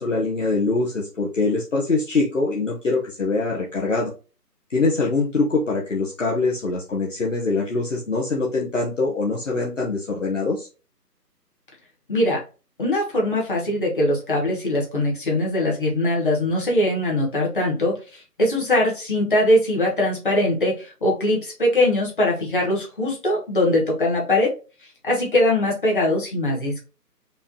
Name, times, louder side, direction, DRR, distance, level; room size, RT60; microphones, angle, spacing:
voice 1, 0.0-4.1 4.7-10.7, left 3 dB, 50° left, -3 dB, 0.9 m, -23 dB
voice 2, 12.1-12.4 12.8-24.5 25.0-26.8, left 1 dB, 30° left, -2 dB, 1.2 m, -21 dB
5.2 x 2.3 x 2.8 m, 0.33 s
figure-of-eight pair, 170°, 49 cm